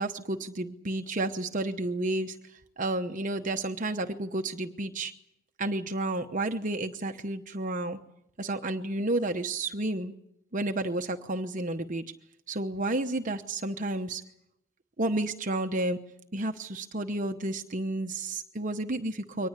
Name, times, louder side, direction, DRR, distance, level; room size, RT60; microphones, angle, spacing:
voice 1, 0.0-5.1 5.6-8.0 8.4-10.1 10.5-12.0 12.5-14.2 15.0-16.0 16.3-19.5, right 2 dB, 35° right, 6 dB, 0.9 m, -31 dB
23.5 x 19.5 x 8.2 m, 0.80 s
head